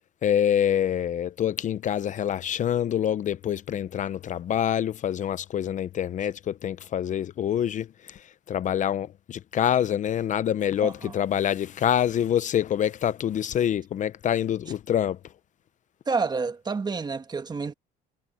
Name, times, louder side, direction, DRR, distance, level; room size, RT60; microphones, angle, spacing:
voice 1, 0.2-8.2 8.5-15.2, left 10 dB, 50° left, 0.6 m, -26 dB
voice 2, 10.8-11.2 16.1-17.7, right 4 dB, 25° right, 1.4 m, -29 dB
cardioid pair, 110°, 17 cm